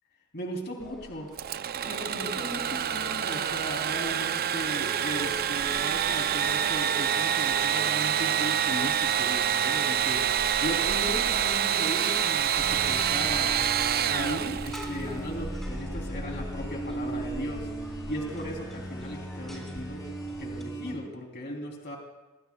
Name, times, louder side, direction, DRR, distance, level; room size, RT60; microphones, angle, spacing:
voice 1, 0.3-1.3 1.8-10.2 10.6-13.6 14.1-17.7 18.1-20.0 20.4-22.0, equal, 45° left, 0 dB, 3.1 m, -37 dB
sound 1, 0.8-20.6, equal, ahead, 3.7 m, -45 dB
Engine / Sawing, 1.4-15.1, right 9 dB, 45° right, 0.5 m, -27 dB
sound 2, 12.5-20.9, right 2 dB, 15° left, 5.2 m, -37 dB
26.5 x 24.0 x 2.3 m, 1.1 s
head